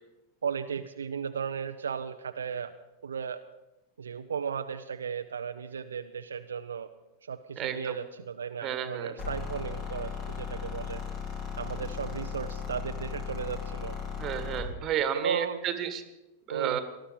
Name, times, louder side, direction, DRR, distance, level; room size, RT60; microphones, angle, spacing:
voice 1, 0.4-2.8 3.0-3.4 4.0-6.9 7.2-11.0 11.6-14.0 15.2-15.6 16.5-16.8, right 7 dB, 70° right, 7 dB, 0.6 m, -35 dB
voice 2, 7.6-8.0 8.6-9.1 14.2-16.0 16.5-16.8, right 9 dB, 30° right, 10 dB, 1.6 m, -32 dB
sound 1, 9.2-14.7, left 6 dB, 35° left, 3.8 m, -37 dB
19.0 x 12.5 x 5.2 m, 1.0 s
figure-of-eight pair, 90°, 0 cm